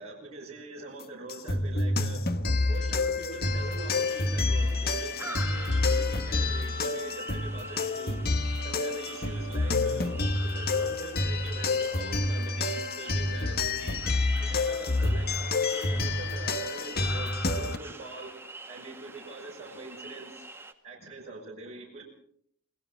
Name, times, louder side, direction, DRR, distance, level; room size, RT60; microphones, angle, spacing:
voice 1, 0.0-2.4 2.7-8.2 8.6-10.2 10.4-14.1 14.4-18.3 18.7-20.4 20.8-22.0, right 3 dB, 30° right, -3 dB, 7.9 m, -43 dB
sound 1, 1.3-17.8, left 2 dB, 45° left, 1.4 m, -28 dB
sound 2, 3.4-20.7, right 3 dB, 10° right, 2.0 m, -46 dB
29.0 x 21.0 x 4.6 m, 0.63 s
head